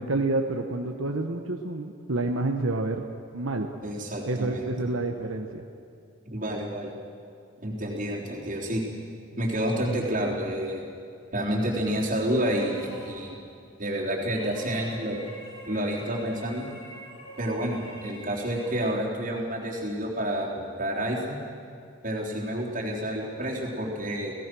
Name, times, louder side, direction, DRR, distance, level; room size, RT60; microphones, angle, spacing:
voice 1, 0.0-3.1 3.3-3.7 4.3-5.6, right 2 dB, 80° right, 3 dB, 1.2 m, -28 dB
voice 2, 3.8-4.7 6.2-6.9 7.6-8.8 9.4-10.9 11.3-13.4 13.8-15.2 15.7-16.7 17.4-21.4 22.0-24.3, right 1 dB, 40° right, -3 dB, 3.8 m, -29 dB
sound 1, 12.3-13.4 14.3-18.9, right 1 dB, 25° left, 6.6 m, -46 dB
30.0 x 17.5 x 6.2 m, 2.4 s
head